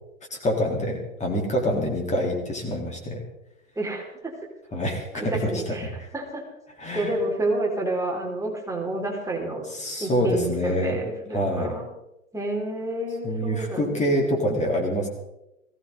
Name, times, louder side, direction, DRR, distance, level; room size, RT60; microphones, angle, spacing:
voice 1, 0.3-3.2 4.7-6.1 6.8-7.2 9.7-11.0 11.3-11.8 13.2-15.1, equal, 15° left, 0 dB, 3.7 m, -26 dB
voice 2, 3.8-4.3 5.1-5.9 6.1-6.4 6.9-9.6 10.0-11.9 12.3-14.0 14.3-14.4, right 2 dB, 5° right, -1 dB, 3.8 m, -29 dB
20.5 x 16.5 x 4.0 m, 0.87 s
figure-of-eight pair, 95°, 41 cm